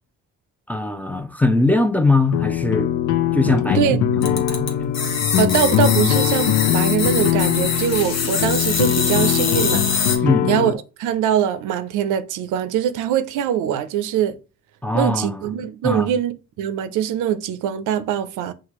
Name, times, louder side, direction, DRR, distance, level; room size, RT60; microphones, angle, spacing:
voice 1, 0.7-2.9 3.3-5.0 5.4-5.5 10.2-10.5 14.8-15.4 15.8-16.1, left 2 dB, 5° left, 0.5 m, -21 dB
sound 1, 2.3-10.7, left 10 dB, 85° left, 0.5 m, -21 dB
sound 2, 4.2-10.2, left 5 dB, 60° left, 1.1 m, -24 dB
voice 2, 5.4-9.9 10.5-14.4 14.9-18.5, right 9 dB, 85° right, 0.5 m, -22 dB
5.9 x 2.4 x 3.0 m
cardioid pair, 90°, 30 cm